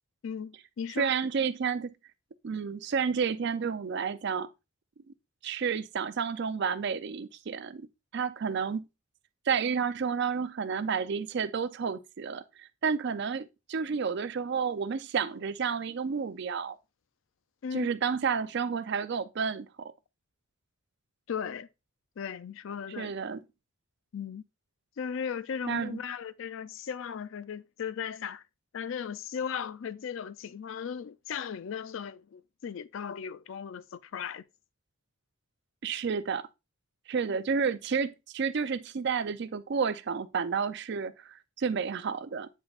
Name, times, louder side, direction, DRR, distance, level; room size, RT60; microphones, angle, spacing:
voice 1, 0.2-1.2 17.6-17.9 21.3-21.7 22.2-23.1 24.1-24.4 25.0-28.4 28.7-34.4 37.3-37.4, left 7 dB, 60° left, 0.4 m, -37 dB
voice 2, 1.0-1.9 2.4-4.5 5.4-7.9 8.1-8.9 9.5-16.8 17.7-19.9 23.0-23.4 25.7-26.0 35.8-36.5 37.1-42.5, right 6 dB, 50° right, 0.4 m, -31 dB
8.3 x 5.2 x 2.4 m
head